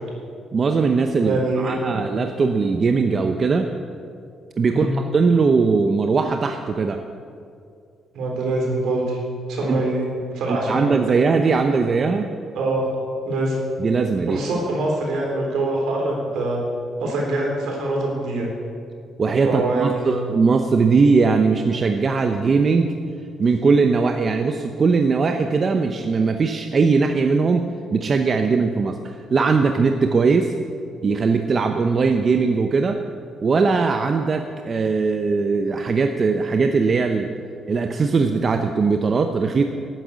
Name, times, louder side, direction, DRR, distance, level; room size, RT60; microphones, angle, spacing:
voice 1, 0.5-3.7 4.6-7.0 9.7-9.8 10.5-12.3 13.8-14.4 19.2-22.9 23.4-27.7 27.9-29.0 29.3-30.5 31.0-33.0 33.4-37.3 37.7-39.6, right 4 dB, 40° right, 6 dB, 0.8 m, -20 dB
voice 2, 1.2-2.0 4.7-5.0 8.1-9.2 9.5-10.9 12.5-12.9 13.2-13.6 14.3-16.6 17.0-18.5 19.4-20.1, right 2 dB, 80° right, -1 dB, 3.8 m, -24 dB
12.0 x 9.1 x 8.2 m, 2.4 s
cardioid pair, 90°, 0 cm